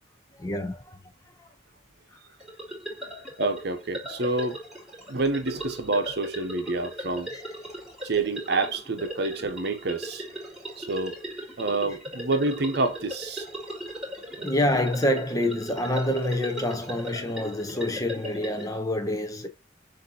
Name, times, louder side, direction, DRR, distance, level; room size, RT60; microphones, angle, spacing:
voice 1, 0.4-1.0 1.4-1.5 7.3-7.4 12.3-12.4 14.4-19.5, left 1 dB, 20° left, 0.5 m, -27 dB
sound 1, 2.4-18.8, equal, ahead, 2.3 m, -38 dB
voice 2, 3.4-4.6 5.1-7.3 8.0-10.2 10.8-11.2 11.6-13.4, right 3 dB, 55° right, 0.8 m, -28 dB
6.3 x 2.7 x 2.6 m
head